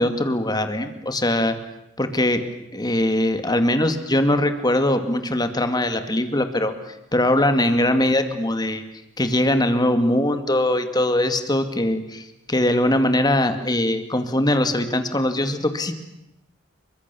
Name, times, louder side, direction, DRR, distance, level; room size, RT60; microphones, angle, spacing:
voice 1, 0.0-1.6 2.0-2.4 2.7-8.8 9.2-15.9, left 1 dB, 20° left, 8 dB, 2.3 m, -21 dB
28.5 x 24.0 x 7.1 m, 0.85 s
head